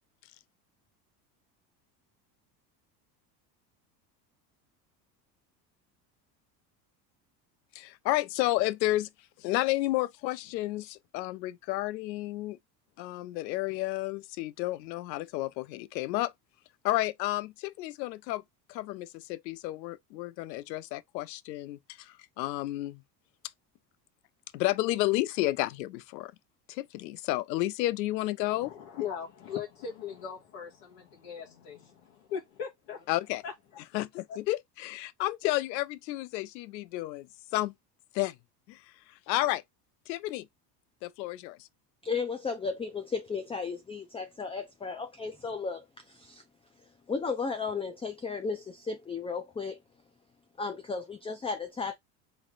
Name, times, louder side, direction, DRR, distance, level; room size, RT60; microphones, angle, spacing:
voice 1, 7.7-9.1 9.4-12.6 13.0-16.3 16.8-18.4 18.7-23.0 24.5-26.3 26.7-28.7 33.1-33.4 33.9-37.3 37.5-37.7 38.1-38.3 38.7-38.8 39.3-39.6 40.1-40.5 41.0-41.6, left 17 dB, 85° left, 0.6 m, -31 dB
voice 2, 28.5-33.1 33.4-33.5, left 8 dB, 65° left, 1.9 m, -39 dB
voice 3, 42.0-46.4 47.1-49.8 50.6-51.9, left 4 dB, 10° left, 0.5 m, -34 dB
3.5 x 3.3 x 3.8 m
hypercardioid pair, 85°, 49 cm